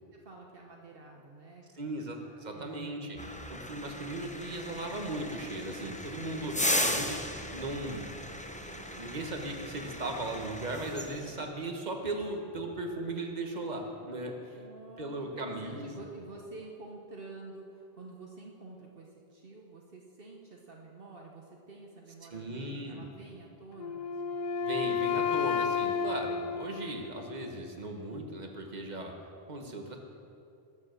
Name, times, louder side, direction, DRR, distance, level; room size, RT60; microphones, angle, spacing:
voice 1, 0.1-1.6 1.9-3.1 14.5-24.4 25.3-25.4, right 3 dB, 65° right, -1 dB, 1.4 m, -49 dB
voice 2, 1.7-3.2 3.5-7.2 7.5-8.0 8.7-14.6 15.0-15.9 22.3-23.1 24.6-29.1 29.5-30.0, right 2 dB, 45° right, 2 dB, 1.6 m, -37 dB
sound 1, 3.2-11.5, left 1 dB, 10° left, 0.7 m, -36 dB
Wind instrument woodwind instrument, 23.8-27.7, left 6 dB, 50° left, 0.6 m, -32 dB
20.5 x 7.2 x 6.6 m, 2.6 s
omnidirectional pair, 1.0 m